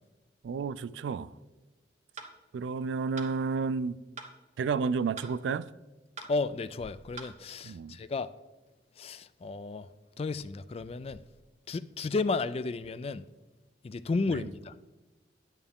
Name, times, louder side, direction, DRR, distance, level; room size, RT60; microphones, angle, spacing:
voice 1, 0.4-1.3 2.5-4.0 4.6-5.7 7.6-8.0 14.3-14.5, right 5 dB, 85° right, 0.3 m, -31 dB
sound 1, 2.2-2.3 3.2-3.3 4.2-4.3 5.2-5.3 6.2-6.3 7.2-7.3, right 4 dB, 40° right, 1.1 m, -43 dB
voice 2, 6.2-8.3 9.0-9.9 10.2-11.2 11.7-13.2 13.8-14.7, left 3 dB, 35° left, 0.3 m, -33 dB
9.6 x 9.2 x 3.6 m
head